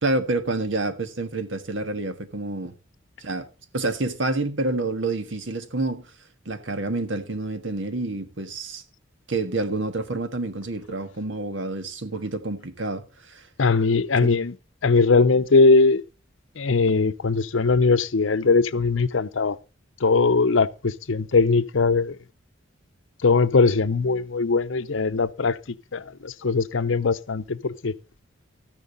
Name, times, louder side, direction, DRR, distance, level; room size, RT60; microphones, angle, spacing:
voice 1, 0.0-2.7 3.2-3.5 3.7-6.1 6.4-8.8 9.3-13.5 14.2-14.3, right 2 dB, 70° right, 1.6 m, -28 dB
voice 2, 13.6-14.5 14.8-16.0 16.6-19.6 20.0-22.2 23.2-25.6 25.9-27.9, left 4 dB, 80° left, 0.7 m, -20 dB
13.5 x 10.5 x 4.0 m
head